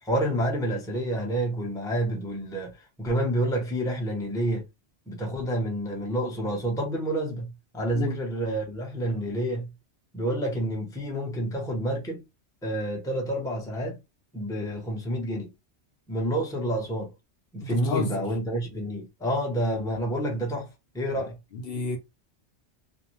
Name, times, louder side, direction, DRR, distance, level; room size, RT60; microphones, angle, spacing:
voice 1, 0.0-4.6 5.1-9.7 10.1-12.2 12.6-14.0 14.3-15.5 16.1-17.1 17.5-20.7 20.9-21.4, right 1 dB, 5° left, 0.6 m, -29 dB
voice 2, 17.7-18.2 21.5-22.0, left 3 dB, 65° left, 0.8 m, -30 dB
2.5 x 2.0 x 3.0 m
omnidirectional pair, 1.2 m